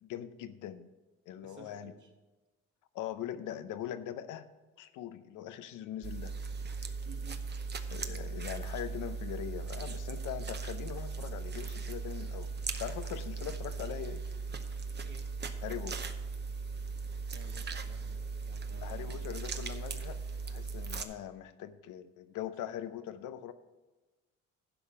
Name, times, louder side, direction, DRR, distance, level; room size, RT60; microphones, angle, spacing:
voice 1, 0.0-0.9 1.3-1.9 2.9-4.5 4.8-6.3 7.9-12.5 12.8-14.3 15.6-16.1 18.8-23.5, left 10 dB, 90° left, 11 dB, 0.7 m, -41 dB
voice 2, 1.4-2.1 7.0-7.4 15.0-15.2 17.3-19.3, right 5 dB, 80° right, 2 dB, 1.9 m, -54 dB
sound 1, 6.0-21.0, right 4 dB, 35° right, 0.9 m, -38 dB
12.0 x 5.1 x 6.9 m, 1.2 s
cardioid pair, 90°, 30 cm